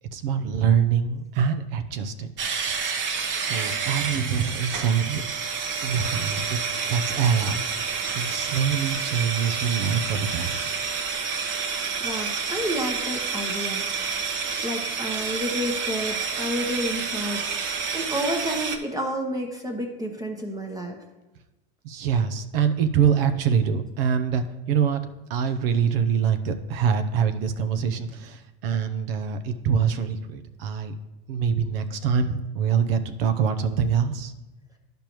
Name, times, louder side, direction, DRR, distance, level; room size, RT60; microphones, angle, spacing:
voice 1, 0.1-2.3 2.7-2.9 3.4-5.2 5.8-6.6 6.9-10.6 21.8-25.0 25.3-30.9 31.3-34.3, right 7 dB, 75° right, 9 dB, 0.7 m, -25 dB
sound 1, 2.4-18.8, right 5 dB, 40° right, 0.9 m, -29 dB
voice 2, 12.0-13.8 14.6-21.0, equal, 10° right, 3 dB, 0.9 m, -30 dB
11.5 x 5.2 x 3.0 m, 1.1 s
supercardioid pair, 115°, 29 cm